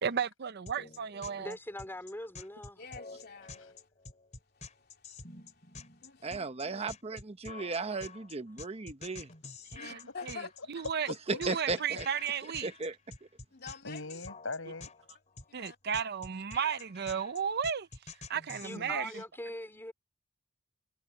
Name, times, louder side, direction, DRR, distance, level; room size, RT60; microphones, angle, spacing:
voice 1, 0.0-1.5 9.7-10.4 10.7-11.1 11.4-12.7 15.5-17.9 18.3-19.2, right 7 dB, 55° right, 0.6 m, -34 dB
sound 1, 0.7-18.8, left 4 dB, 35° left, 3.9 m, -48 dB
voice 2, 1.4-2.8 18.6-19.9, left 1 dB, 10° left, 4.0 m, -42 dB
voice 3, 2.8-3.9 4.5-6.4 6.7-6.8 9.6-10.5 10.7-10.8 13.5-14.2 15.5-15.8, left 5 dB, 50° left, 2.7 m, -49 dB
voice 4, 6.2-9.3 11.5-12.0 12.6-12.9, right 3 dB, 30° right, 1.0 m, -36 dB
voice 5, 11.0-11.6 11.9-12.0 13.8-14.9 18.7-19.0, left 3 dB, 80° left, 6.6 m, -41 dB
head